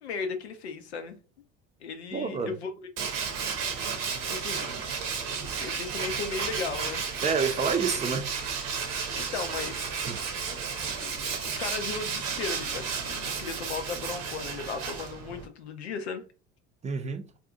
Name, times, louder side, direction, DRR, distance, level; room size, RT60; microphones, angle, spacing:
voice 1, 0.0-1.2 1.8-2.7 4.3-4.9 5.3-7.0 8.9-10.0 11.0-16.2, left 5 dB, 85° left, 0.5 m, -36 dB
voice 2, 2.1-2.5 7.2-8.3 10.0-10.2 16.8-17.3, right 5 dB, 20° right, 0.5 m, -28 dB
Tools, 3.0-15.5, right 6 dB, 65° right, 0.8 m, -33 dB
2.7 x 2.4 x 3.6 m
hypercardioid pair, 65°, 32 cm